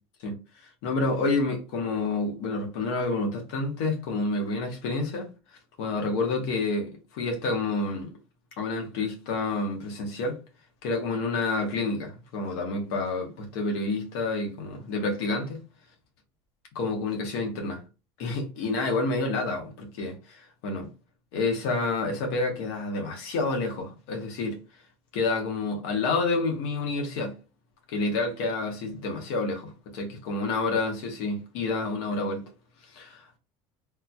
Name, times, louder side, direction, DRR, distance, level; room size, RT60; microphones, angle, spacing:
voice 1, 0.2-5.3 5.8-8.1 8.6-10.4 10.8-15.6 16.7-17.8 18.2-20.9 21.3-24.6 25.1-27.3 27.9-32.4 32.8-33.4, left 3 dB, 75° left, 1.0 m, -29 dB
3.5 x 2.8 x 2.3 m
supercardioid pair, 110°, 14 cm